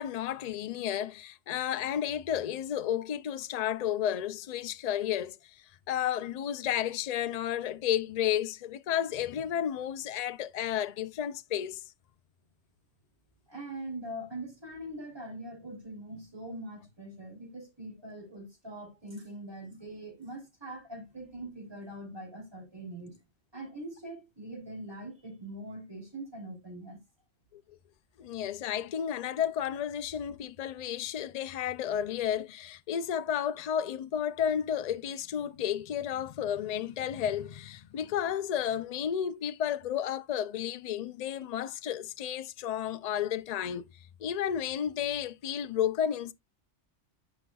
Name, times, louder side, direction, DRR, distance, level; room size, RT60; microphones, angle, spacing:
voice 1, 0.0-11.8 27.5-27.6 28.2-43.9 44.2-46.3, left 9 dB, 55° left, 0.4 m, -32 dB
voice 2, 13.5-23.2 23.5-27.0, right 1 dB, 20° right, 3.2 m, -42 dB
10.0 x 5.1 x 2.3 m
omnidirectional pair, 1.2 m